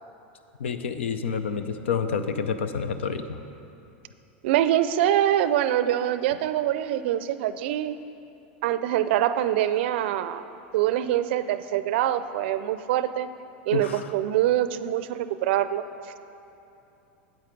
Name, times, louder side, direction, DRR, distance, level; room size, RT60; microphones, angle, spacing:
voice 1, 0.6-3.4 13.7-14.2, left 6 dB, 90° left, 10 dB, 0.5 m, -29 dB
voice 2, 4.4-8.0 8.6-10.4 10.7-13.3 13.7-15.8, right 12 dB, 70° right, 12 dB, 0.4 m, -24 dB
8.6 x 8.3 x 4.5 m, 2.8 s
hypercardioid pair, 110°, 6 cm